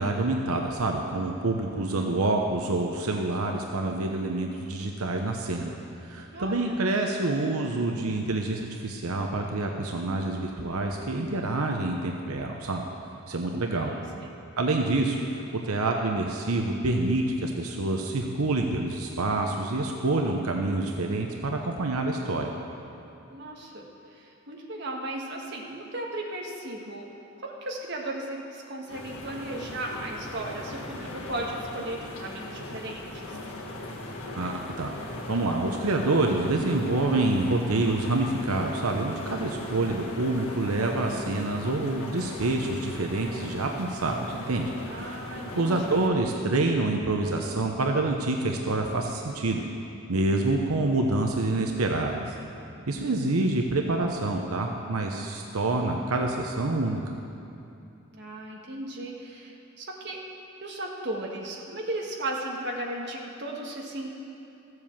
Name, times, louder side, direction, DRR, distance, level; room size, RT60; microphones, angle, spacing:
voice 1, 0.0-5.7 6.0-12.9 13.3-13.9 14.6-22.5 34.3-34.9 35.3-44.7 44.9-45.2 45.6-49.6 50.1-52.3 52.9-57.0, right 2 dB, 90° right, 2 dB, 0.9 m, -27 dB
voice 2, 1.8-2.2 6.3-6.8 13.7-14.3 23.3-27.1 27.4-33.4 44.8-46.1 52.8-53.5 58.1-60.2 60.6-64.1, right 1 dB, 50° right, -1 dB, 1.6 m, -36 dB
sound 1, 28.9-46.1, left 1 dB, 80° left, 1.9 m, -39 dB
14.0 x 7.9 x 7.3 m, 2.8 s
head